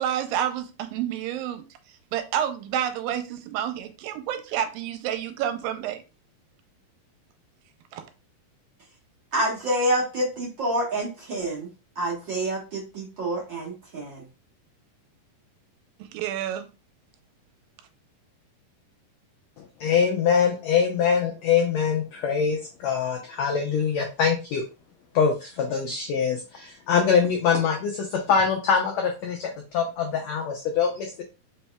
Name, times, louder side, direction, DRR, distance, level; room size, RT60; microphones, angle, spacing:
voice 1, 0.0-1.7 2.1-6.0 7.9-8.1 16.0-16.7, right 10 dB, 85° right, 2.4 m, -29 dB
voice 2, 9.3-11.7 12.0-14.2, right 1 dB, 55° right, 1.3 m, -27 dB
voice 3, 19.6-24.6 25.1-31.2, left 6 dB, 85° left, 1.5 m, -24 dB
5.2 x 4.2 x 2.2 m
omnidirectional pair, 4.0 m